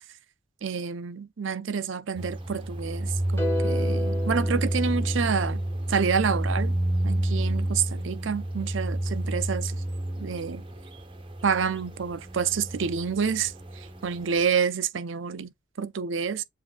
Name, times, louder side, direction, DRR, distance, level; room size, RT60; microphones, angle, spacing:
voice 1, 0.6-5.6 5.9-6.7 7.0-9.8 10.2-10.6 11.4-15.5 15.8-16.4, right 6 dB, 75° right, 0.6 m, -28 dB
sound 1, 2.1-14.5, right 1 dB, 25° right, 0.7 m, -30 dB
sound 2, 3.4-5.7, left 1 dB, 10° left, 1.4 m, -32 dB
7.5 x 2.7 x 2.2 m
head